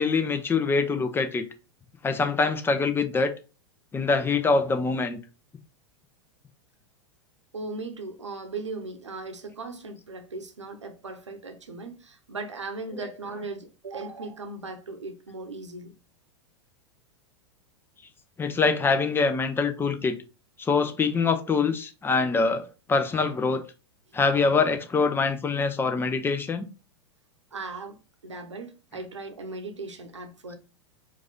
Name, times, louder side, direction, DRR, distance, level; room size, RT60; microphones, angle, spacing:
voice 1, 0.0-1.4 2.0-3.3 3.9-5.2 12.9-13.0 18.4-20.1 20.6-23.6 24.1-26.6, left 4 dB, 15° left, 0.7 m, -24 dB
voice 2, 7.5-15.9 27.5-28.0 28.2-30.5, right 3 dB, 85° right, 0.9 m, -38 dB
4.7 x 2.6 x 3.7 m
figure-of-eight pair, 95°, 15 cm